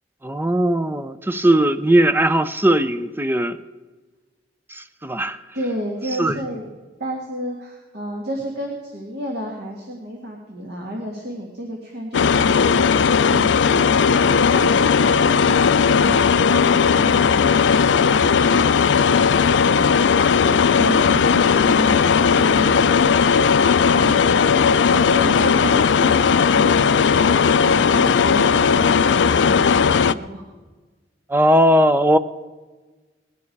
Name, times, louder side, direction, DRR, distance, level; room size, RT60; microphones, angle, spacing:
voice 1, 0.2-3.6 4.7-5.4 6.2-6.3 31.3-32.2, right 1 dB, 10° right, 0.6 m, -18 dB
voice 2, 5.5-6.7 7.0-13.0 13.3-20.1 20.4-23.2 23.5-30.4, equal, 60° right, 2.0 m, -32 dB
sound 1, 12.1-30.1, left 6 dB, 75° left, 0.4 m, -16 dB
20.0 x 11.0 x 4.6 m
head